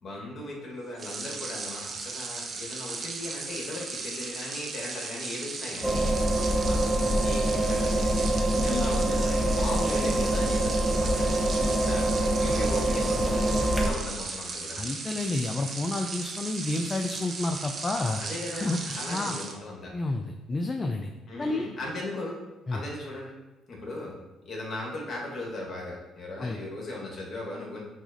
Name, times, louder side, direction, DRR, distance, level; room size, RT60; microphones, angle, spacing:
voice 1, 0.0-6.1 6.6-6.8 7.2-8.3 8.6-12.1 12.4-14.8 18.2-19.9 21.3-22.4 22.7-23.3 23.7-24.1 24.4-27.8, left 2 dB, 45° left, -2 dB, 1.3 m, -38 dB
sound 1, 0.9-19.6, right 4 dB, 45° right, 0.5 m, -36 dB
sound 2, 5.8-13.9, right 1 dB, 5° right, 0.8 m, -25 dB
voice 2, 14.7-18.2 18.6-19.4 19.9-21.1 21.4-21.7 22.7-22.8 26.4-26.6, left 2 dB, 30° left, 3 dB, 0.3 m, -30 dB
5.9 x 2.4 x 2.6 m, 1.1 s
supercardioid pair, 80°, 0 cm